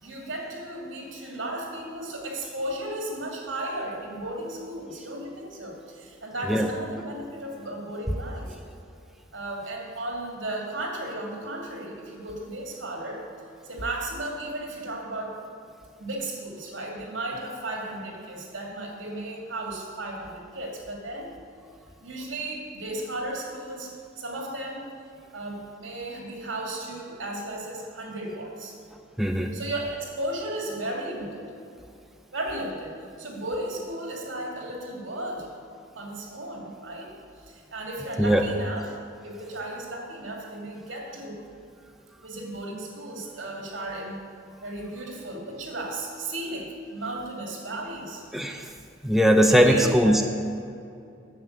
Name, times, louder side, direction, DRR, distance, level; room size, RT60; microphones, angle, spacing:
voice 1, 0.0-8.6 9.3-13.2 13.6-15.4 16.0-21.3 22.0-24.9 25.3-28.7 29.5-31.5 32.3-35.5 35.9-37.1 37.4-38.9 39.2-41.4 42.2-44.2 44.6-48.2 49.4-50.2, right 1 dB, 75° right, 0 dB, 2.6 m, -35 dB
voice 2, 29.2-29.5 38.2-38.5 48.3-48.7 49.0-50.3, equal, ahead, 4 dB, 0.6 m, -20 dB
9.3 x 7.4 x 8.1 m, 2.5 s
head